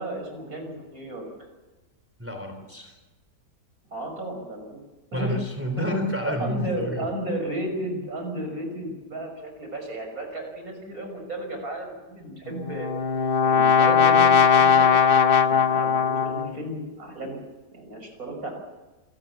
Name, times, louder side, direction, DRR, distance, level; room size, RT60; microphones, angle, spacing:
voice 1, 0.0-1.5 3.9-4.8 5.1-5.4 5.8-6.0 6.2-12.9 13.4-14.9 15.4-17.4 17.7-18.5, right 1 dB, 55° right, 4 dB, 6.4 m, -33 dB
voice 2, 2.2-3.0 5.1-7.1, left 1 dB, 5° right, 5 dB, 3.3 m, -29 dB
Brass instrument, 12.5-16.7, left 7 dB, 45° left, 0.8 m, -19 dB
26.5 x 18.0 x 7.2 m, 1.2 s
omnidirectional pair, 1.8 m